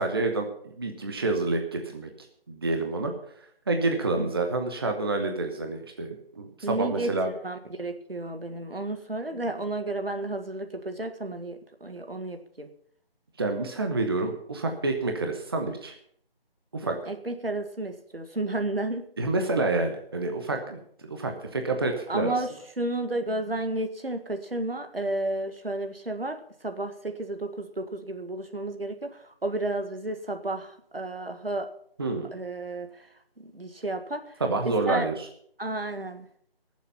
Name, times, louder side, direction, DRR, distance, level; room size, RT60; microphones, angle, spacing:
voice 1, 0.0-2.1 2.5-3.1 3.7-7.3 13.4-15.9 16.7-16.9 19.2-20.8 21.1-22.3 32.0-32.3 34.4-35.3, right 3 dB, 25° right, 4 dB, 1.1 m, -28 dB
voice 2, 6.6-12.7 16.8-19.0 22.1-22.5 22.8-29.1 29.4-31.7 32.3-32.9 33.4-34.2 34.6-35.1 35.6-36.3, right 2 dB, 75° right, 7 dB, 1.8 m, -32 dB
19.5 x 7.4 x 5.8 m, 0.64 s
figure-of-eight pair, 160°, 30 cm